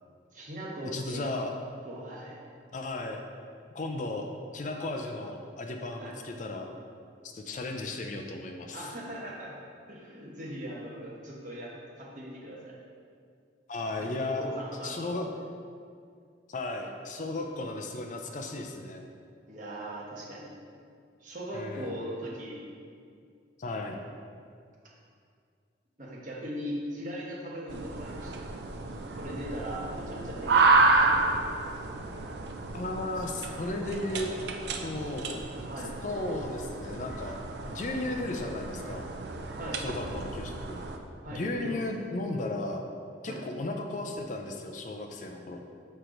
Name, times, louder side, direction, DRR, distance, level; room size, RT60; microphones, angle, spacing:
voice 1, 0.3-1.2 1.8-2.4 6.0-6.2 8.7-9.5 9.9-12.8 14.2-15.4 19.5-20.5 21.2-22.6 26.0-28.3 29.1-31.6 35.6-35.9 39.5-39.8 41.2-41.8 43.2-43.4, equal, 45° right, -4 dB, 1.1 m, -39 dB
voice 2, 0.9-1.5 2.7-3.2 3.7-4.3 4.5-6.7 7.3-8.9 13.7-14.5 14.8-15.3 16.5-19.1 21.5-22.0 23.6-24.0 32.7-34.3 34.8-35.4 36.0-37.4 37.7-39.1 39.7-40.8 41.3-42.9 43.2-45.6, left 2 dB, 40° left, 3 dB, 0.4 m, -35 dB
sound 1, 27.7-41.0, right 3 dB, 60° right, 0.5 m, -30 dB
6.7 x 4.4 x 3.8 m, 2.3 s
head